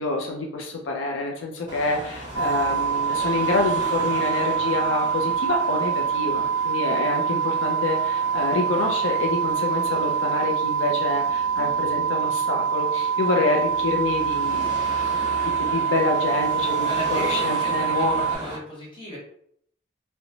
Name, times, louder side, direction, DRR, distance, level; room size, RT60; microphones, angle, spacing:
voice 1, 0.0-14.7 15.2-18.3, left 3 dB, 85° left, 1 dB, 0.5 m, -27 dB
Car passing by / Traffic noise roadway noise / Engine, 1.7-18.6, right 1 dB, 25° right, 0.8 m, -38 dB
sound 1, 2.3-18.4, right 7 dB, 65° right, 0.5 m, -25 dB
voice 2, 16.7-19.2, left 1 dB, 25° left, -4 dB, 0.9 m, -36 dB
2.6 x 2.1 x 2.8 m, 0.67 s
head